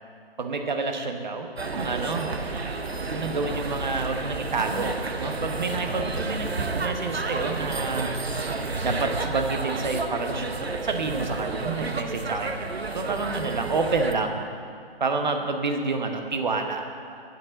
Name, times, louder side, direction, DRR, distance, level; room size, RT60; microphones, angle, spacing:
voice 1, 0.4-2.4 3.0-8.1 8.8-14.4 15.0-17.2, right 3 dB, 50° right, 5 dB, 1.0 m, -29 dB
sound 1, 1.6-14.1, right 3 dB, 85° right, 0.8 m, -31 dB
8.5 x 6.4 x 7.5 m, 2.3 s
figure-of-eight pair, 140°, 30 cm